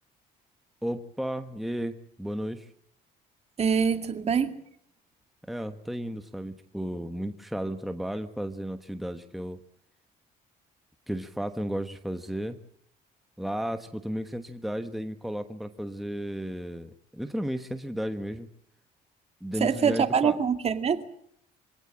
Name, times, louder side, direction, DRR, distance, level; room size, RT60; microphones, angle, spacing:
voice 1, 0.8-2.7 5.5-9.6 11.1-12.6 13.4-18.5 19.4-20.4, equal, ahead, 7 dB, 1.2 m, -33 dB
voice 2, 3.6-4.6 19.6-21.0, right 6 dB, 40° right, 8 dB, 2.3 m, -24 dB
25.5 x 17.5 x 8.8 m, 0.70 s
cardioid pair, 110°, 17 cm